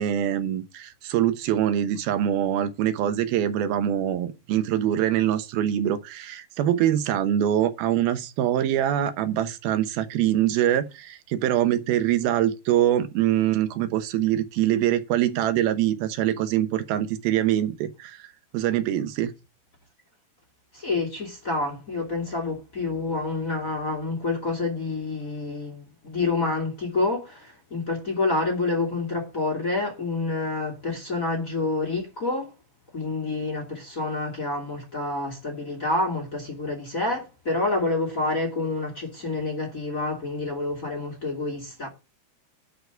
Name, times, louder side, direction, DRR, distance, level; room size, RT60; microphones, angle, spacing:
voice 1, 0.0-18.3 18.5-19.3, right 11 dB, 75° right, 2.8 m, -24 dB
voice 2, 20.7-32.5 32.9-41.9, left 3 dB, 25° left, 2.3 m, -28 dB
10.5 x 4.7 x 8.0 m
omnidirectional pair, 4.5 m